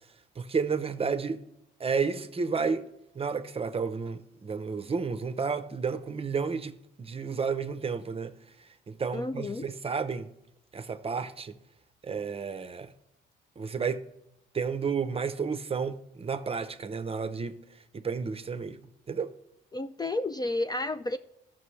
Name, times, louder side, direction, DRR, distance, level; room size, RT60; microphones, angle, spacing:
voice 1, 0.4-1.4 1.8-2.8 3.1-6.7 7.0-8.3 8.9-10.3 10.7-11.5 12.0-12.9 13.6-14.0 14.5-17.6 17.9-18.8 19.1-19.3, right 5 dB, 30° right, 0.6 m, -31 dB
voice 2, 9.1-9.7 19.7-21.2, left 2 dB, 20° left, 0.3 m, -31 dB
13.5 x 6.0 x 3.2 m
cardioid pair, 90°, 20 cm